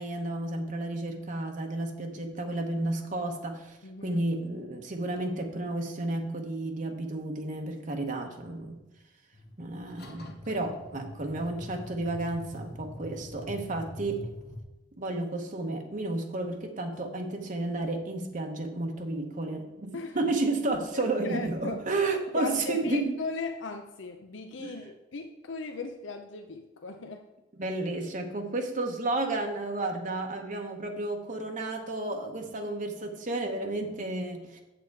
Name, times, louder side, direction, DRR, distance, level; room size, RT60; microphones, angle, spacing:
voice 1, 0.0-8.8 9.6-14.3 15.0-23.1 24.6-24.8 27.6-34.6, right 2 dB, 45° right, 3 dB, 0.9 m, -32 dB
voice 2, 3.8-4.2 19.9-20.2 20.9-21.8 22.3-27.3, left 3 dB, 75° left, 5 dB, 0.6 m, -38 dB
sound 1, 9.3-14.6, left 1 dB, 55° left, 1.2 m, -44 dB
7.7 x 7.6 x 4.6 m, 1.0 s
head